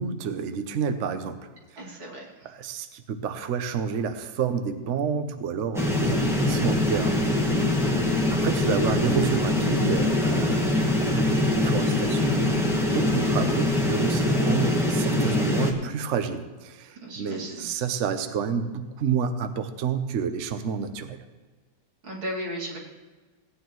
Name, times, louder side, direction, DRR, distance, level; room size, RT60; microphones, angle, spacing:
voice 1, 0.0-2.0 2.4-7.3 8.3-21.2, right 6 dB, 60° right, 8 dB, 0.8 m, -29 dB
voice 2, 1.8-2.5 7.8-8.1 13.1-13.3 17.0-17.7 22.0-22.8, right 1 dB, 85° right, -4 dB, 3.2 m, -36 dB
sound 1, 5.7-15.7, left 1 dB, ahead, 0.9 m, -23 dB
17.0 x 9.6 x 3.1 m, 1.3 s
omnidirectional pair, 2.1 m